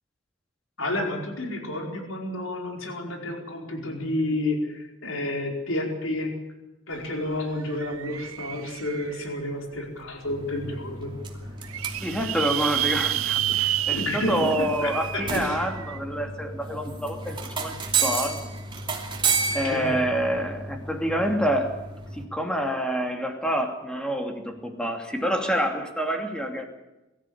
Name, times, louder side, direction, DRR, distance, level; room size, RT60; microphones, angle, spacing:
voice 1, 0.8-6.3 6.9-11.1 13.9-15.6 19.5-20.1, left 1 dB, 70° left, 2 dB, 4.8 m, -30 dB
sound 1, 6.9-7.0 7.3-9.4 10.0-10.1 10.5-10.6 10.7-10.8 11.4-16.0, right 13 dB, 85° right, 0.8 m, -30 dB
sound 2, 10.2-22.2, right 4 dB, 25° right, 2.8 m, -32 dB
voice 2, 12.0-18.4 19.5-21.7 22.1-26.6, equal, 5° left, 4 dB, 2.7 m, -27 dB
23.5 x 14.0 x 8.6 m, 1.0 s
head